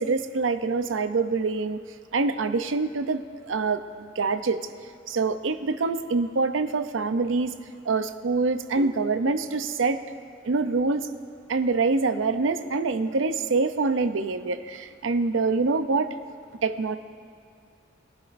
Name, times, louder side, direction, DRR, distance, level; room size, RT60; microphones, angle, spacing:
voice 1, 0.0-1.8 2.1-4.7 5.1-7.5 7.9-10.0 10.4-11.1 11.5-16.1 16.6-17.0, right 4 dB, 90° right, 10 dB, 0.6 m, -25 dB
21.0 x 11.5 x 2.6 m, 2.4 s
head